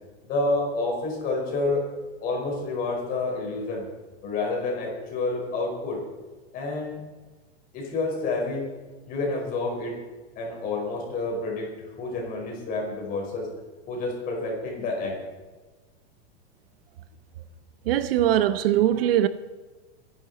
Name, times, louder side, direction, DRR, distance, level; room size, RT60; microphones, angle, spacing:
voice 1, 0.3-1.9 2.2-3.9 4.2-6.0 6.5-7.0 7.7-8.7 9.1-10.0 10.4-13.5 13.9-15.2, left 3 dB, 25° left, 5.2 m, -29 dB
voice 2, 17.9-19.3, right 12 dB, 60° right, 0.9 m, -21 dB
23.0 x 11.0 x 4.3 m
supercardioid pair, 170°, 33 cm